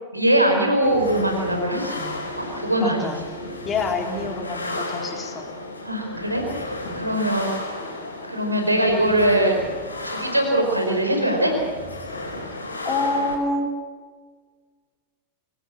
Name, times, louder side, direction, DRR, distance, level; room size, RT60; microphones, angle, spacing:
voice 1, 0.1-3.1 5.8-7.5 8.3-9.5 10.0-11.5, right 1 dB, 85° right, 3 dB, 4.8 m, -22 dB
sound 1, 0.8-13.4, left 2 dB, 80° left, 4.8 m, -34 dB
voice 2, 2.8-3.2 3.7-5.5 6.9-7.1 12.8-13.7, left 3 dB, 20° left, 2 dB, 3.8 m, -27 dB
25.0 x 19.0 x 7.4 m, 1.5 s
figure-of-eight pair, 90°, 0 cm